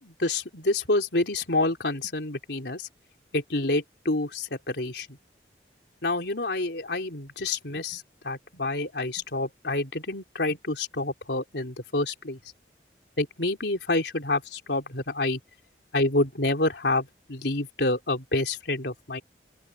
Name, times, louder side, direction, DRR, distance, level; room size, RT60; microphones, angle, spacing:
voice 1, 0.0-2.9 3.3-5.2 6.0-12.4 13.2-15.4 15.9-19.2, left 2 dB, 75° left, 3.5 m, -28 dB
open air
head